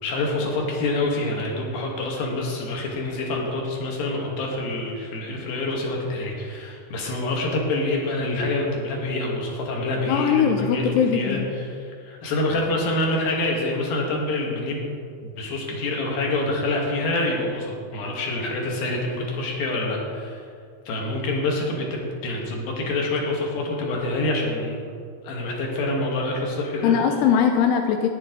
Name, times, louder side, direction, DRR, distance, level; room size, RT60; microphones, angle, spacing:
voice 1, 0.0-14.9 15.2-20.4 20.9-24.8 25.2-26.9, left 2 dB, 60° left, -1 dB, 3.3 m, -26 dB
voice 2, 10.1-11.5 26.8-28.1, left 8 dB, 80° left, 4 dB, 2.4 m, -20 dB
15.0 x 10.5 x 4.0 m, 2.3 s
omnidirectional pair, 5.5 m